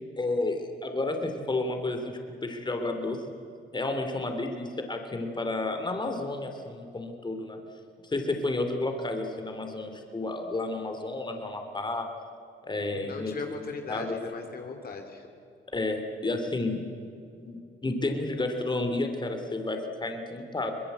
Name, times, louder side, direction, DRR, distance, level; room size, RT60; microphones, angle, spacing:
voice 1, 0.2-2.0 2.4-3.2 3.7-7.6 8.0-12.1 12.7-14.2 15.7-16.8 17.4-20.8, left 2 dB, 20° left, 5 dB, 3.1 m, -31 dB
voice 2, 13.0-15.3, left 4 dB, 50° left, 4 dB, 2.6 m, -38 dB
23.5 x 21.0 x 8.2 m, 2.5 s
cardioid pair, 90°, 20 cm